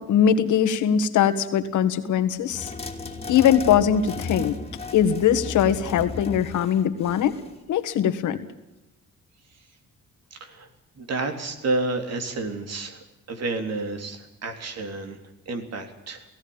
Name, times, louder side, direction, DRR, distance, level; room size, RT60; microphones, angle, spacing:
voice 1, 0.0-2.7 3.3-4.5 4.9-7.3 7.7-8.4, left 9 dB, 75° left, 9 dB, 1.8 m, -21 dB
sound 1, 2.5-7.6, left 3 dB, 20° left, 3.0 m, -35 dB
voice 2, 10.3-10.7 11.0-15.2 15.5-16.2, right 2 dB, 55° right, 6 dB, 3.7 m, -30 dB
17.5 x 16.5 x 8.9 m, 0.95 s
cardioid pair, 90°, 30 cm